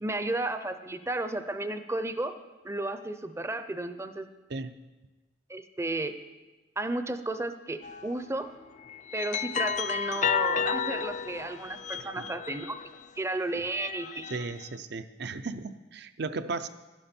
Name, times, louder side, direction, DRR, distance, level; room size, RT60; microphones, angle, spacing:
voice 1, 0.0-2.3 2.6-4.3 5.5-6.1 6.8-8.5 9.1-12.8 13.2-14.3, right 2 dB, 15° right, 10 dB, 0.5 m, -33 dB
sound 1, 7.8-8.1 8.8-12.9 13.5-14.6, left 7 dB, 40° left, 0.4 m, -32 dB
voice 2, 14.3-16.7, right 3 dB, 60° right, 11 dB, 0.6 m, -36 dB
12.0 x 11.5 x 4.4 m, 1.2 s
head